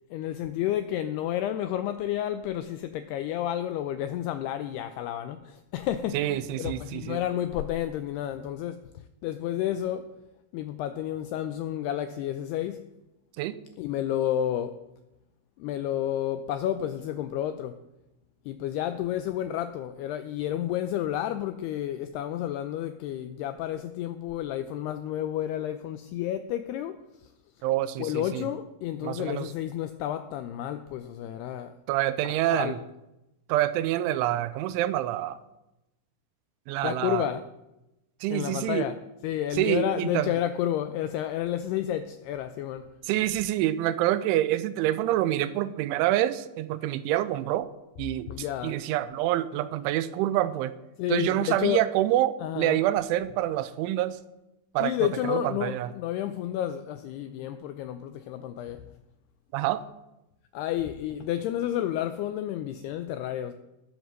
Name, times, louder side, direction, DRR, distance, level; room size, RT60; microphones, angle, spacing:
voice 1, 0.1-8.8 9.2-10.1 10.5-12.9 13.8-14.8 15.6-17.8 18.5-27.3 28.0-31.7 32.5-32.8 36.8-37.4 38.3-38.9 39.2-42.9 48.3-48.8 51.0-51.9 52.4-52.8 54.8-58.9 60.5-63.5, left 11 dB, 90° left, 10 dB, 2.3 m, -31 dB
voice 2, 6.1-7.2 13.4-13.6 27.6-28.4 29.0-29.5 31.9-32.8 33.5-35.4 36.7-37.3 38.2-38.9 39.6-40.3 43.1-47.7 48.0-48.3 48.6-50.7 51.1-54.2 54.7-54.9 55.3-55.9 59.5-59.8, right 13 dB, 85° right, 14 dB, 3.1 m, -27 dB
19.0 x 8.0 x 6.5 m, 0.94 s
omnidirectional pair, 5.4 m